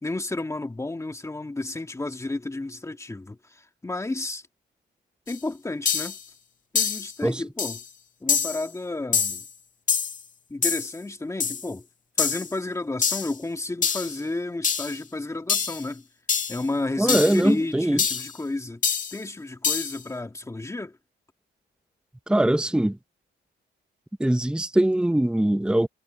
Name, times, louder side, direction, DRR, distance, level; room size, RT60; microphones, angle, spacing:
voice 1, 0.0-4.4 5.3-6.2 6.7-7.8 8.2-9.4 10.5-11.9 12.2-16.0 16.5-18.8 19.1-21.0, left 2 dB, 15° left, 2.1 m, -31 dB
sound 1, 5.3-5.4 5.9-6.2 6.8-7.1 7.6-7.8 8.3-8.7 9.1-9.5 9.9-10.2 10.6-10.9 11.4-11.7 12.2-12.5 13.0-13.4 13.8-14.2 14.6-15.0 15.5-15.8 16.3-16.6 17.1-17.4 18.0-18.3 18.8-19.2 19.6-20.0, left 6 dB, 40° left, 1.8 m, -25 dB
voice 2, 17.0-18.0 22.3-23.0 24.2-25.9, right 1 dB, 5° right, 1.0 m, -22 dB
cardioid pair, 90°, 20 cm